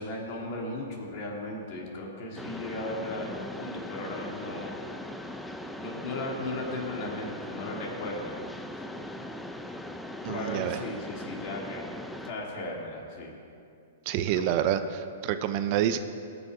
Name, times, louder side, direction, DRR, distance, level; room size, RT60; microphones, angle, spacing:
voice 1, 0.0-4.8 5.8-8.4 8.7-8.8 10.2-11.9 12.2-13.3 14.3-14.5, left 1 dB, 45° left, -1 dB, 2.6 m, -36 dB
Mechanisms, 2.4-12.3, left 1 dB, 5° left, 0.6 m, -40 dB
voice 2, 10.2-10.8 14.1-16.0, right 10 dB, 45° right, 10 dB, 0.6 m, -27 dB
18.0 x 7.1 x 4.9 m, 2.5 s
hypercardioid pair, 140°, 0 cm